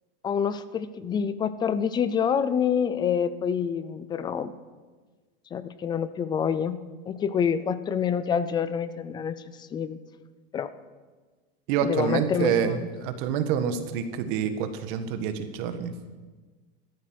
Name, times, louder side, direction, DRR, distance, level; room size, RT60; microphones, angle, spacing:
voice 1, 0.2-4.5 5.5-6.8 7.1-9.4 9.7-10.0 10.5-10.7 11.8-12.8, left 7 dB, 15° left, 14 dB, 0.4 m, -27 dB
voice 2, 11.7-15.9, right 8 dB, 55° right, 9 dB, 1.5 m, -27 dB
14.0 x 13.0 x 6.3 m, 1.4 s
supercardioid pair, 155°, 30 cm